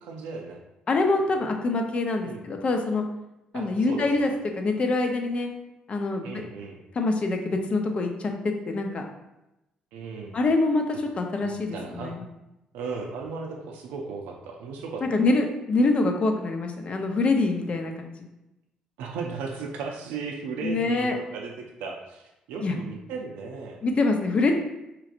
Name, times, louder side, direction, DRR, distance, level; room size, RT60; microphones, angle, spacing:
voice 1, 0.0-0.6 2.3-2.4 3.5-4.1 6.2-6.8 9.9-10.4 11.4-12.1 12.7-15.2 19.0-23.8, right 4 dB, 90° right, 1 dB, 0.4 m, -36 dB
voice 2, 0.9-3.0 3.5-5.5 5.9-6.4 6.9-9.0 10.3-12.3 15.0-18.3 20.6-21.2 22.6-22.8 23.8-24.5, left 3 dB, 45° left, 3 dB, 0.6 m, -25 dB
4.7 x 3.1 x 2.5 m, 0.94 s
supercardioid pair, 75°, 3 cm